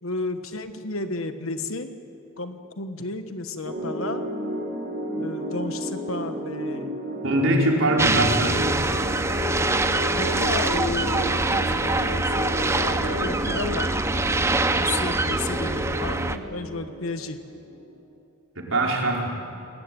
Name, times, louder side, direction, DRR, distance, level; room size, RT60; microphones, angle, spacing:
voice 1, 0.0-1.9 2.4-4.3 5.1-7.0 10.1-13.9 14.8-17.4, left 3 dB, 80° left, 8 dB, 1.3 m, -32 dB
sound 1, 3.6-18.0, equal, 45° right, 4.4 m, -32 dB
voice 2, 7.2-8.7 18.6-19.3, right 1 dB, 70° right, -1 dB, 4.5 m, -22 dB
sound 2, 8.0-16.4, right 2 dB, 15° right, 0.7 m, -24 dB
21.0 x 20.0 x 9.2 m, 2.8 s
head